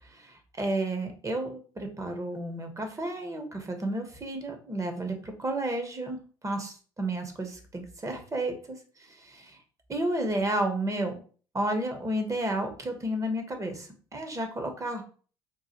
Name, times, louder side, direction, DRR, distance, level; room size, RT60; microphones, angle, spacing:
voice 1, 0.1-8.5 9.2-9.6 9.9-11.2 11.5-15.0, right 1 dB, 25° right, 5 dB, 1.0 m, -32 dB
3.8 x 2.4 x 2.9 m, 0.41 s
hypercardioid pair, 55°, 13 cm